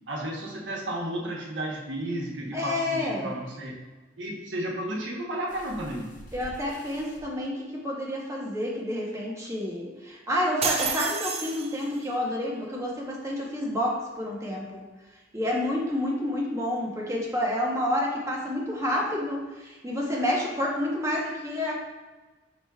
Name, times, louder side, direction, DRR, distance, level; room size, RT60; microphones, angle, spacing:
voice 1, 0.1-3.8 4.2-6.1, right 1 dB, 90° right, -2 dB, 1.0 m, -33 dB
voice 2, 2.5-3.3 6.3-14.8 15.3-21.8, left 1 dB, 15° right, -3 dB, 0.8 m, -29 dB
sound 1, 5.5-7.2 8.2-8.3 8.7-8.8, equal, 45° left, 0.7 m, -47 dB
sound 2, 10.6-12.1, right 5 dB, 35° right, 0.4 m, -29 dB
5.0 x 4.6 x 2.3 m, 1.2 s
head